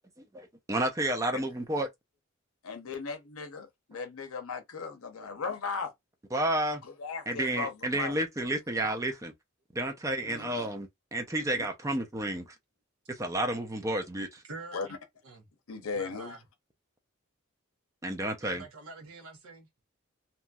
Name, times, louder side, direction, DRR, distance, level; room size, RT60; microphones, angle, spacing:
voice 1, 0.3-1.9 6.3-6.8 7.3-9.3 9.7-12.5 13.1-14.4 18.0-18.6, right 1 dB, 15° right, 0.5 m, -31 dB
voice 2, 2.6-5.9 6.8-8.2 10.2-10.6 11.5-11.7 14.7-14.9 15.7-16.4, left 4 dB, 85° left, 0.7 m, -37 dB
voice 3, 14.4-14.9 15.2-15.4 15.9-16.4 18.4-19.7, right 3 dB, 90° right, 1.0 m, -46 dB
2.9 x 2.5 x 2.2 m
head